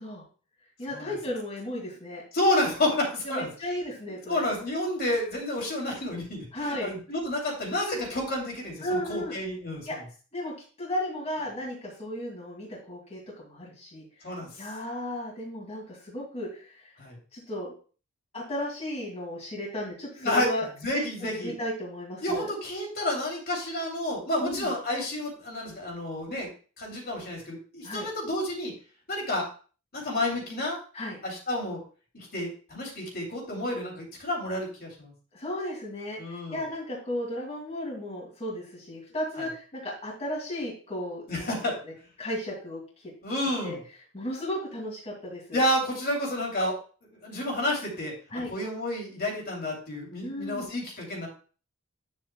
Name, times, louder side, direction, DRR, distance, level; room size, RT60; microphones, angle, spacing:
voice 1, 0.8-2.2 3.2-4.5 6.5-7.0 8.8-9.3 9.9-10.0 10.3-14.0 14.6-16.9 17.3-17.7 18.3-20.7 20.9-22.5 24.4-24.7 27.8-28.1 30.9-31.2 35.3-41.5 41.8-41.9 42.2-42.8 43.6-43.8 44.1-45.6 48.3-48.5 50.2-50.7, left 1 dB, 30° left, -5 dB, 2.4 m, -34 dB
voice 2, 2.3-3.5 4.3-10.0 14.2-14.5 17.0-17.2 20.2-20.5 20.8-21.5 22.2-26.5 26.8-28.7 29.1-29.5 29.9-30.8 31.2-31.8 32.1-35.1 36.2-36.6 39.4-39.5 41.3-41.8 43.2-43.8 45.5-46.8 47.1-48.1 48.5-51.3, left 1 dB, 45° left, -1 dB, 2.8 m, -30 dB
9.5 x 7.4 x 2.2 m, 0.39 s
head